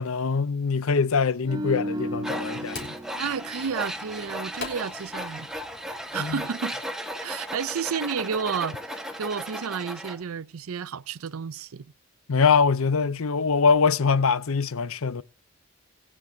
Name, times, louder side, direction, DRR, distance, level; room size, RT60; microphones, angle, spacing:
voice 1, 0.0-3.0 6.2-6.4 12.3-15.2, left 5 dB, 75° left, 0.6 m, -23 dB
sound 1, 1.1-6.5, left 4 dB, 50° left, 4.0 m, -45 dB
sound 2, 1.4-4.7 5.0-5.3, equal, 20° right, 0.7 m, -35 dB
Tools, 2.2-10.2, equal, ahead, 1.4 m, -36 dB
voice 2, 3.2-5.5 6.1-6.8 7.2-11.8, right 6 dB, 80° right, 0.5 m, -31 dB
20.5 x 9.9 x 2.8 m
head